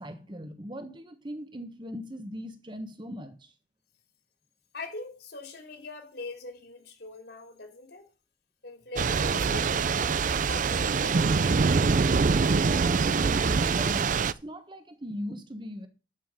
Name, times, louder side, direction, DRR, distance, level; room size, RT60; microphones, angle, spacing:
voice 1, 0.0-3.5 12.6-15.9, equal, 25° right, 1.3 m, -40 dB
voice 2, 4.7-8.1 8.6-11.6, left 3 dB, 60° left, 3.2 m, -42 dB
Thunder / Rain, 9.0-14.3, right 4 dB, 45° right, 0.4 m, -24 dB
12.0 x 5.7 x 6.4 m
head